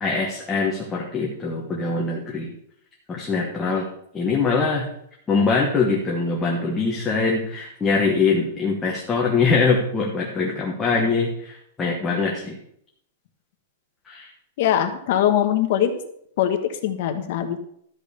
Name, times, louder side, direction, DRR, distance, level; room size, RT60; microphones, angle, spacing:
voice 1, 0.0-2.5 3.1-3.9 4.1-4.9 5.3-12.5 14.1-14.3, left 4 dB, 10° left, -3 dB, 1.3 m, -23 dB
voice 2, 14.6-15.9 16.4-17.6, left 10 dB, 45° left, 6 dB, 1.3 m, -21 dB
13.0 x 5.3 x 6.6 m, 0.70 s
supercardioid pair, 175°, 0 cm